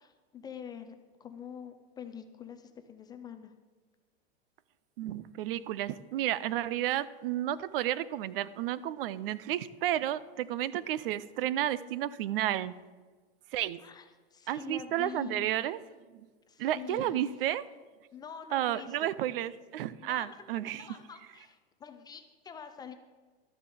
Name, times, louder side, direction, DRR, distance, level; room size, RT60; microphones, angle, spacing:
voice 1, 0.0-3.5 13.8-15.5 16.5-17.3 18.1-19.1 20.0-22.9, left 7 dB, 15° left, 8 dB, 0.4 m, -46 dB
voice 2, 5.0-12.7 13.5-13.8 14.5-15.8 16.6-17.6 18.5-20.8, right 12 dB, 60° right, 18 dB, 0.6 m, -32 dB
12.0 x 6.9 x 6.9 m, 1.4 s
supercardioid pair, 145°, 32 cm